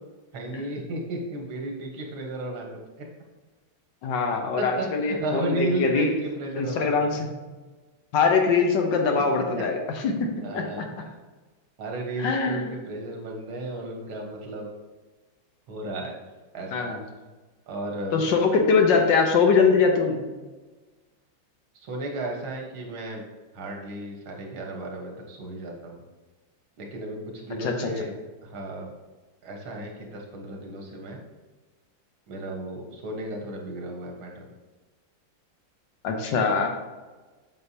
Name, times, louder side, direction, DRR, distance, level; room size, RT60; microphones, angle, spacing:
voice 1, 0.3-3.1 4.6-7.2 9.4-9.6 10.4-10.9 11.8-14.7 15.7-16.2 16.5-16.9 17.7-18.2 21.8-23.3 23.5-26.0 26.8-28.1 28.4-28.9 29.4-31.2 32.3-34.5, right 2 dB, 90° right, 1 dB, 2.1 m, -34 dB
voice 2, 4.0-6.1 6.6-7.3 8.1-9.8 10.0-10.1 10.5-10.6 12.2-12.7 16.7-17.0 18.1-20.2 27.6-27.9 36.0-36.7, left 5 dB, 70° left, 3 dB, 1.5 m, -22 dB
7.7 x 5.9 x 2.8 m, 1.3 s
omnidirectional pair, 2.2 m